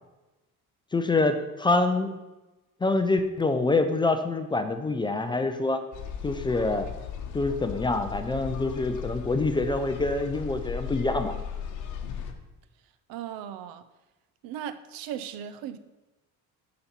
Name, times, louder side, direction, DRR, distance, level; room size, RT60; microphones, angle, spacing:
voice 1, 0.9-2.2 2.8-5.8 6.2-6.9 7.3-11.4, left 2 dB, 15° left, 8 dB, 0.4 m, -26 dB
sound 1, 5.9-12.3, left 7 dB, 60° left, 1.0 m, -36 dB
voice 2, 13.1-13.8 14.4-15.8, right 10 dB, 85° right, 12 dB, 0.7 m, -37 dB
7.0 x 5.2 x 5.7 m, 1.1 s
cardioid pair, 150°, 35 cm